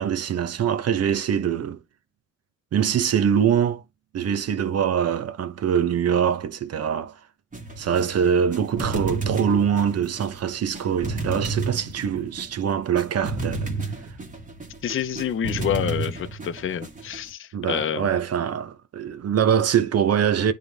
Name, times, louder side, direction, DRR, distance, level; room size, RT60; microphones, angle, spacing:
voice 1, 0.0-1.8 2.7-3.8 4.1-7.2 7.8-13.7 17.5-20.5, right 8 dB, 55° right, 1.0 m, -23 dB
sound 1, 7.5-17.3, right 3 dB, 25° right, 1.7 m, -32 dB
voice 2, 14.8-18.1, left 9 dB, 45° left, 0.7 m, -28 dB
9.4 x 3.7 x 3.5 m
cardioid pair, 90°, 30 cm